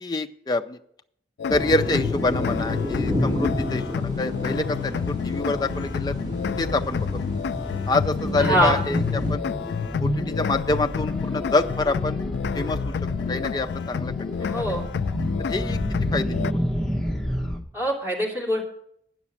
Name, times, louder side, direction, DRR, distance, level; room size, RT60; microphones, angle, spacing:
voice 1, 0.0-0.8 1.5-6.1 6.6-7.1 7.9-9.0 9.3-9.4 10.0-12.2 12.5-12.8 13.3-14.5 15.5-15.8 16.1-16.3, left 2 dB, 25° left, 6 dB, 0.5 m, -26 dB
sound 1, 1.4-16.5, left 7 dB, 80° left, 0.3 m, -29 dB
sound 2, 1.5-9.3, left 1 dB, 45° right, 4.6 m, -31 dB
sound 3, 4.8-17.6, equal, 5° left, 1.0 m, -31 dB
voice 2, 8.4-8.8 14.4-14.9 17.7-18.6, equal, 15° right, -3 dB, 2.6 m, -24 dB
9.7 x 6.1 x 8.5 m, 0.68 s
head